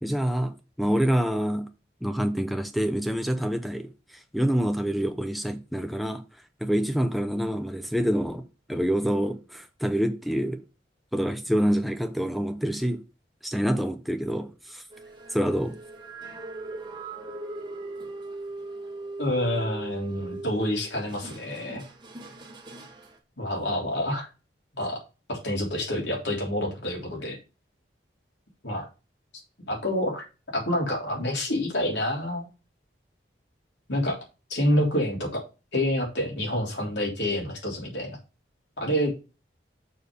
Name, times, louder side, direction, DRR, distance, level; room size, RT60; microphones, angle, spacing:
voice 1, 0.0-1.7 2.0-3.9 4.3-6.2 6.6-8.4 8.7-10.6 11.1-13.0 13.4-14.8 15.3-15.8, equal, ahead, 0.7 m, -26 dB
sound 1, 14.9-23.2, right 2 dB, 25° right, 1.4 m, -39 dB
voice 2, 19.2-21.8 23.4-24.3 24.8-25.0 25.3-27.4 28.6-28.9 29.7-30.2 30.5-32.5 33.9-34.2 34.5-35.4 35.7-38.2 38.8-39.1, left 1 dB, 75° left, 3.4 m, -27 dB
6.7 x 4.5 x 5.3 m
head